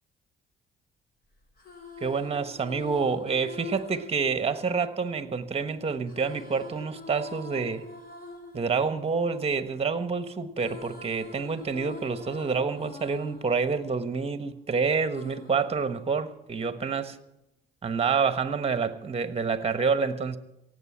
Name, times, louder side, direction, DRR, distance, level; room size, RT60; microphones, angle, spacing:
sound 1, 1.4-5.5 6.1-10.1 10.4-14.6 15.1-16.6, left 4 dB, 50° left, 3.5 m, -46 dB
voice 1, 2.0-7.8 8.5-17.2 17.8-20.4, right 5 dB, 30° right, 1.3 m, -28 dB
17.5 x 8.1 x 8.6 m
cardioid pair, 90°, 20 cm